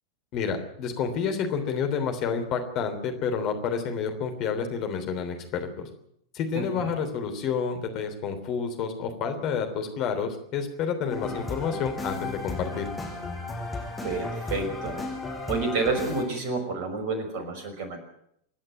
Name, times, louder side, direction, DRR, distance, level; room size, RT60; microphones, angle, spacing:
voice 1, 0.3-5.9 6.3-12.9, left 6 dB, 40° left, 6 dB, 3.2 m, -29 dB
voice 2, 6.5-6.9 14.0-15.0 15.5-18.0, right 3 dB, 45° right, 7 dB, 5.5 m, -29 dB
sound 1, 11.1-16.2, left 2 dB, 10° left, 6.1 m, -34 dB
26.5 x 11.0 x 9.2 m, 0.73 s
figure-of-eight pair, 90°, 0 cm